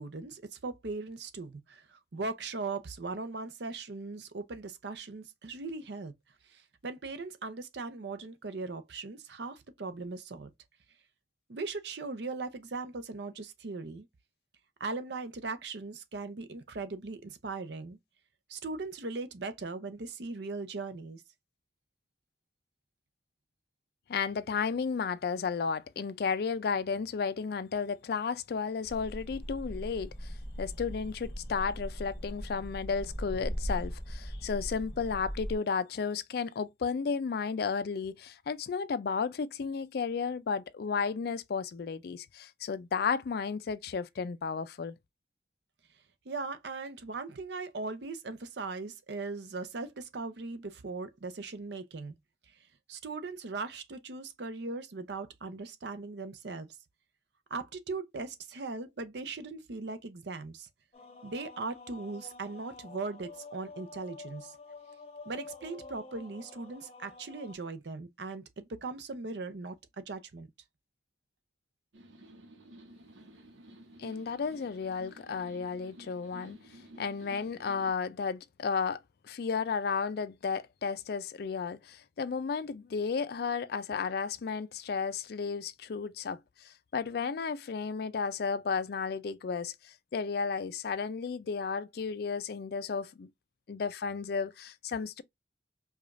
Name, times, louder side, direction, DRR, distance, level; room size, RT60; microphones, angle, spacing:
voice 1, 0.0-6.1 6.4-10.5 11.5-14.1 14.8-18.0 18.5-21.2 46.3-52.1 52.5-52.6 52.9-56.7 57.5-60.7 61.2-64.6 65.3-70.5, right 3 dB, 65° right, 0.6 m, -39 dB
voice 2, 24.1-45.0 74.0-76.6 77.0-86.4 86.6-93.3 93.7-95.2, left 5 dB, 55° left, 0.4 m, -33 dB
sound 1, 28.8-35.6, equal, 10° left, 1.0 m, -39 dB
sound 2, 60.9-67.5, left 3 dB, 35° left, 0.8 m, -49 dB
sound 3, 71.9-77.9, right 1 dB, 85° right, 0.9 m, -53 dB
4.9 x 2.4 x 2.4 m
head